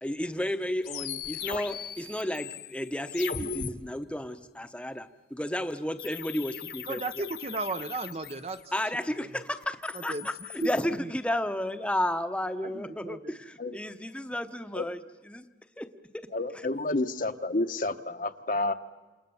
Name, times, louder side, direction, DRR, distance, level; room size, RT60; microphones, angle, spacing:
voice 1, 0.0-7.3 8.7-15.0 15.3-15.4 15.8-15.9 16.1-16.3, left 1 dB, 5° left, 9 dB, 0.9 m, -32 dB
sound 1, 0.8-3.7 6.0-8.8 9.6-10.9, left 7 dB, 65° left, 1.4 m, -39 dB
voice 2, 6.9-8.6 9.2-9.3 9.9-10.3 10.6-11.1 12.6-12.7 13.0-13.4, right 3 dB, 35° right, 11 dB, 0.8 m, -34 dB
voice 3, 16.3-18.7, left 2 dB, 50° left, 8 dB, 1.0 m, -30 dB
28.5 x 28.5 x 7.1 m, 1.3 s
head